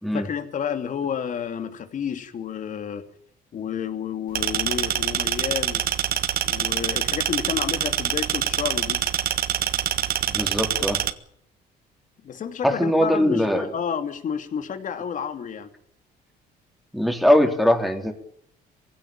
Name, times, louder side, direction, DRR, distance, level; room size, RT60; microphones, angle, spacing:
voice 1, 0.1-3.0 3.5-5.8 6.4-9.0 12.2-15.7, left 7 dB, 50° left, 8 dB, 2.9 m, -30 dB
sound 1, 4.3-11.1, right 11 dB, 60° right, 1.4 m, -25 dB
voice 2, 10.3-11.0 12.6-13.6 16.9-18.1, equal, ahead, 4 dB, 4.0 m, -21 dB
22.5 x 16.5 x 8.9 m, 0.69 s
cardioid pair, 110°, 17 cm